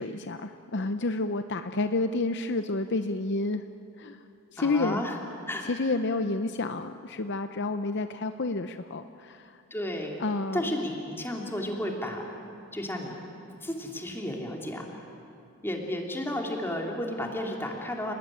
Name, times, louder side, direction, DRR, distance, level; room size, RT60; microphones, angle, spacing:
voice 1, 0.0-3.6 4.0-4.2 4.5-5.0 5.6-9.6 10.2-10.7, left 3 dB, 50° left, 9 dB, 0.7 m, -30 dB
voice 2, 4.6-5.2 5.5-5.7 9.7-10.2 10.5-12.3 12.7-13.2 13.6-14.9 15.6-18.1, left 1 dB, 10° left, 1 dB, 3.1 m, -32 dB
30.0 x 19.0 x 10.0 m, 2.7 s
head